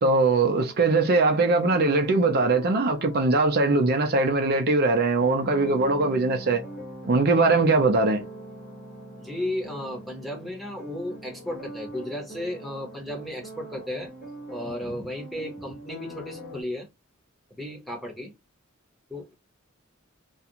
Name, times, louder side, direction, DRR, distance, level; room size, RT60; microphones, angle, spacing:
voice 1, 0.0-6.6 7.1-8.2, right 3 dB, 50° right, 0.5 m, -21 dB
sound 1, 0.6-16.6, equal, 45° left, 1.1 m, -42 dB
voice 2, 9.2-14.1 14.5-16.9 17.5-18.3 19.1-19.3, left 1 dB, ahead, 0.9 m, -34 dB
2.4 x 2.3 x 2.8 m
head